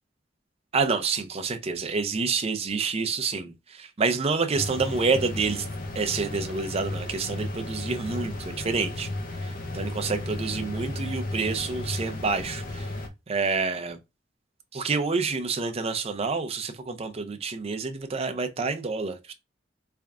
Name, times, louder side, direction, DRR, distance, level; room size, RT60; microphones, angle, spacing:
voice 1, 0.7-5.7 6.0-9.1 9.4-12.9 13.3-14.0 14.7-19.3, right 4 dB, 35° right, 0.5 m, -28 dB
sound 1, 4.5-13.1, left 2 dB, 50° left, 0.7 m, -34 dB
3.6 x 3.4 x 2.3 m
head